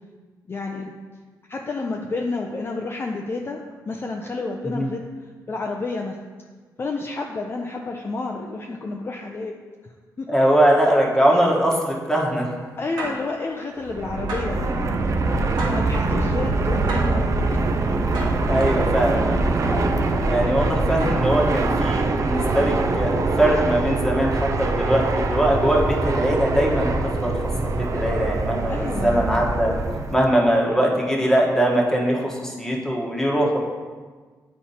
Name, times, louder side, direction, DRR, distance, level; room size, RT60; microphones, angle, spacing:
voice 1, 0.5-0.9 1.5-5.0 5.5-6.1 6.8-9.5 9.8-10.4 12.8-15.1 15.7-17.7 17.9-18.0 28.7-29.2, left 3 dB, 35° left, 1 dB, 0.5 m, -30 dB
voice 2, 10.3-12.5 18.5-19.8 20.3-29.7 30.1-33.6, right 1 dB, 5° left, -2 dB, 1.2 m, -21 dB
sound 1, 13.0-13.3 14.3-14.6 15.6-15.9 16.9-17.2 18.1-18.5 19.6-19.9 21.0-21.4 22.4-22.7, right 2 dB, 85° right, 1.3 m, -32 dB
Fixed-wing aircraft airplane, 13.8-30.2, right 3 dB, 45° right, 0.5 m, -23 dB
9.1 x 4.3 x 2.8 m, 1.5 s
cardioid pair, 100°, 7 cm